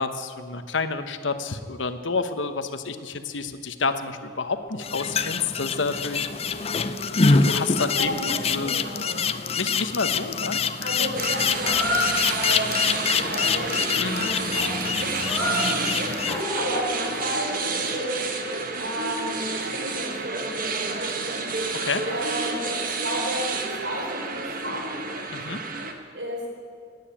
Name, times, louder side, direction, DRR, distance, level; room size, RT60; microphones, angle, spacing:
voice 1, 0.0-6.3 7.3-8.1 8.5-8.7 9.6-10.6 14.0-14.3 21.8-22.0 25.3-25.6, left 4 dB, 80° left, 10 dB, 1.1 m, -29 dB
sound 1, 4.8-16.4, left 5 dB, 30° left, 0.5 m, -25 dB
sound 2, 5.5-5.6 6.0-6.8 7.3-8.1 11.6-12.2 15.2-15.7 16.3-17.1, left 2 dB, 15° left, 2.7 m, -29 dB
voice 2, 8.0-9.3 10.8-16.3 16.5-18.2 18.8-21.4 22.0-24.9 26.1-26.5, equal, 70° right, -1 dB, 4.7 m, -33 dB
sound 3, 11.2-25.9, right 4 dB, 45° right, 1.5 m, -30 dB
17.0 x 9.7 x 8.6 m, 2.2 s
head